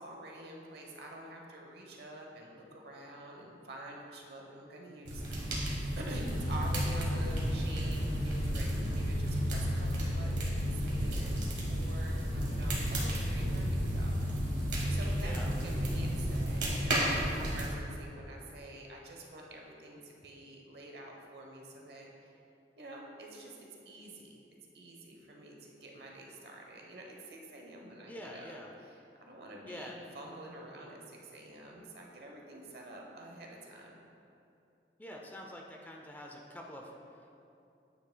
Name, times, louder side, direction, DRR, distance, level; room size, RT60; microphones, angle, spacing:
voice 1, 0.0-11.4 11.7-22.1 22.8-23.6 23.8-24.4 24.7-28.5 29.2-33.9, right 1 dB, 65° right, -1 dB, 0.9 m, -47 dB
sound 1, 5.1-17.7, right 1 dB, 85° right, 1.5 m, -33 dB
sound 2, 6.2-16.7, left 1 dB, 85° left, 1.5 m, -36 dB
voice 2, 15.2-15.5 28.0-28.7 29.6-30.0 35.0-37.3, equal, 10° left, 0 dB, 0.4 m, -46 dB
9.5 x 5.8 x 2.2 m, 2.7 s
head